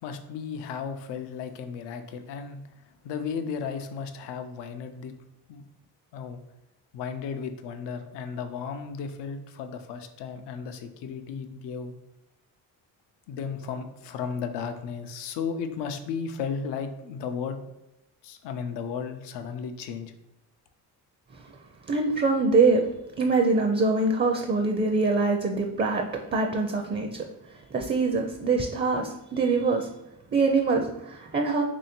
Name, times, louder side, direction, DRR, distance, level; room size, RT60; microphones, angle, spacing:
voice 1, 0.0-5.1 5.5-5.6 6.1-6.4 6.9-12.0 13.3-17.6 18.2-20.1, left 6 dB, 90° left, 7 dB, 0.6 m, -34 dB
voice 2, 21.9-22.8 23.2-27.2 27.5-29.9 30.3-31.6, right 3 dB, 25° right, 3 dB, 0.4 m, -24 dB
3.1 x 2.7 x 4.2 m, 0.91 s
cardioid pair, 80°, 40 cm